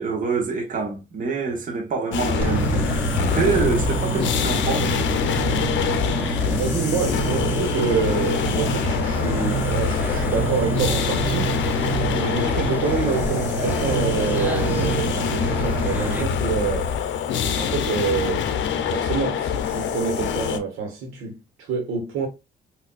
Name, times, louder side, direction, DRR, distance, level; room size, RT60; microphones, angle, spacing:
voice 1, 0.0-4.9, right 4 dB, 40° right, 1.1 m, -26 dB
sound 1, 2.1-20.6, left 7 dB, 70° left, 0.6 m, -25 dB
sound 2, 2.4-16.2, right 3 dB, 10° right, 0.9 m, -27 dB
voice 2, 6.6-11.8 12.2-16.9 17.5-18.4 18.9-22.3, right 5 dB, 90° right, 1.4 m, -27 dB
4.1 x 2.7 x 2.4 m
cardioid pair, 90°, 20 cm